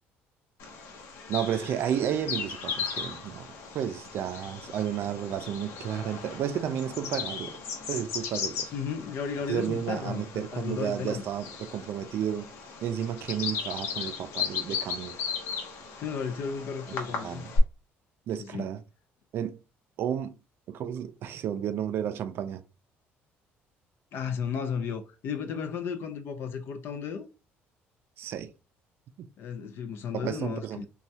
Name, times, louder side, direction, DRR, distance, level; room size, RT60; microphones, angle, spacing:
Bird vocalization bird call bird song, 0.6-17.6, left 5 dB, 80° left, 0.8 m, -37 dB
voice 1, 1.3-3.5 3.7-7.6 7.9-8.7 9.5-12.5 12.8-15.2 17.1-17.5 18.3-18.8 19.3-19.6 20.0-20.4 20.7-22.6 28.2-28.5 30.1-30.9, right 9 dB, 55° right, 0.4 m, -32 dB
voice 2, 8.7-11.2 15.7-17.5 18.4-18.7 24.1-27.3 29.4-30.9, left 6 dB, 55° left, 0.4 m, -34 dB
3.0 x 2.3 x 2.7 m
cardioid pair, 140°, 5 cm